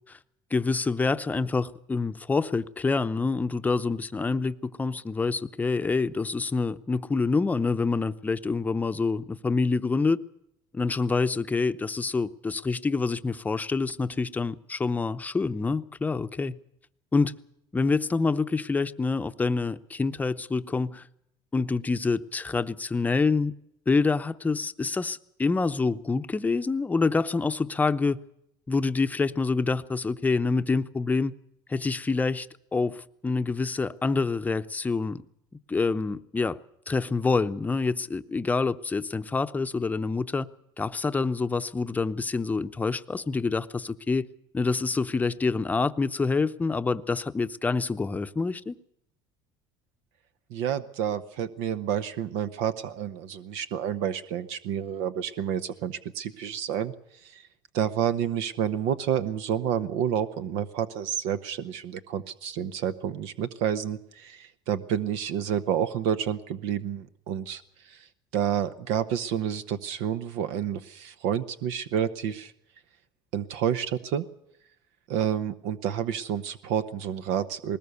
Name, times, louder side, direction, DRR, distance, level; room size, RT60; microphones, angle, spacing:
voice 1, 0.5-10.2 10.7-16.6 17.1-17.3 17.7-21.0 21.5-23.6 23.9-28.2 28.7-31.3 31.7-32.5 32.7-35.2 35.7-36.6 36.9-40.5 40.8-44.3 44.5-48.8, left 4 dB, 15° left, 0.7 m, -26 dB
voice 2, 50.5-56.9 57.2-57.4 57.7-68.1 68.3-72.5 73.3-74.2 75.1-77.8, right 9 dB, 80° right, 0.9 m, -29 dB
20.0 x 19.0 x 6.8 m
cardioid pair, 120°, 11 cm